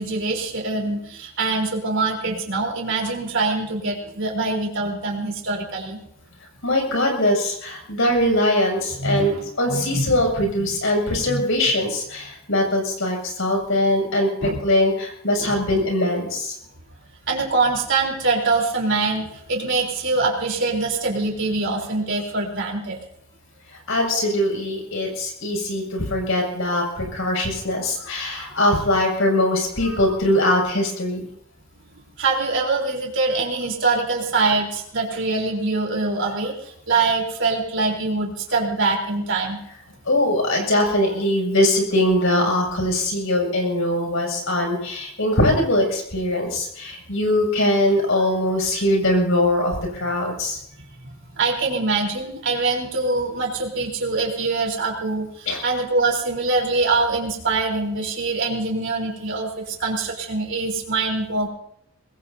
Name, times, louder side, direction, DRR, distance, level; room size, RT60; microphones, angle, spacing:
voice 1, 0.0-6.0 9.0-10.1 10.5-10.6 11.3-11.4 14.4-14.6 15.4-15.5 17.3-23.0 32.2-36.5 36.9-39.6 51.4-61.5, right 3 dB, 60° right, 0 dB, 3.9 m, -24 dB
voice 2, 6.6-16.6 23.7-31.3 40.1-50.6 55.5-55.6, left 1 dB, 65° left, 1 dB, 6.9 m, -21 dB
24.5 x 20.5 x 2.8 m, 0.75 s
head